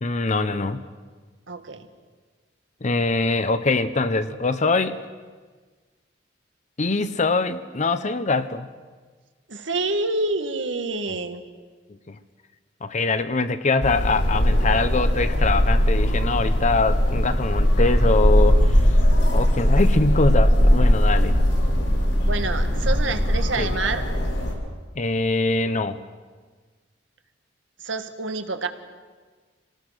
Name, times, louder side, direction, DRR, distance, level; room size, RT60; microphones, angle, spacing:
voice 1, 0.0-0.8 2.8-4.9 6.8-8.7 12.1-12.2 12.8-18.9 19.3-21.3 23.6-23.7 25.0-26.0, left 3 dB, 40° left, 11 dB, 0.8 m, -23 dB
voice 2, 1.5-1.9 9.5-11.4 22.2-24.1 27.8-28.7, right 3 dB, 90° right, 8 dB, 1.7 m, -27 dB
sound 1, 13.8-24.5, equal, 90° left, 5.1 m, -19 dB
26.5 x 18.5 x 6.6 m, 1.4 s
head